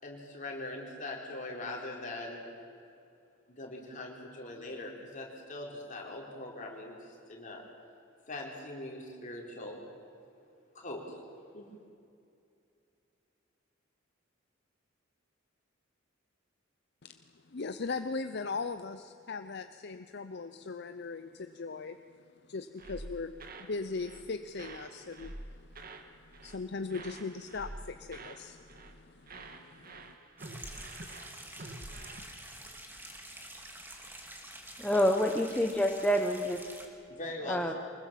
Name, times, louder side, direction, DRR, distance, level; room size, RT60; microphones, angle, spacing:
voice 1, 0.0-2.4 3.5-7.6 8.3-9.8 10.7-11.1 11.5-11.7 37.1-37.7, left 2 dB, 40° left, -1 dB, 4.2 m, -41 dB
voice 2, 17.5-30.1, left 4 dB, 55° left, 9 dB, 0.7 m, -39 dB
sound 1, 22.8-23.7 24.0-24.3 24.5-26.1 26.3-26.6 26.9-28.4 28.7-29.0 29.3-32.2, right 2 dB, 45° right, 1.8 m, -47 dB
sound 2, 30.4-36.9, right 1 dB, 10° right, 2.3 m, -48 dB
voice 3, 34.8-36.6 37.5-37.7, equal, 5° left, 3 dB, 0.9 m, -27 dB
24.5 x 20.5 x 7.5 m, 2.6 s
head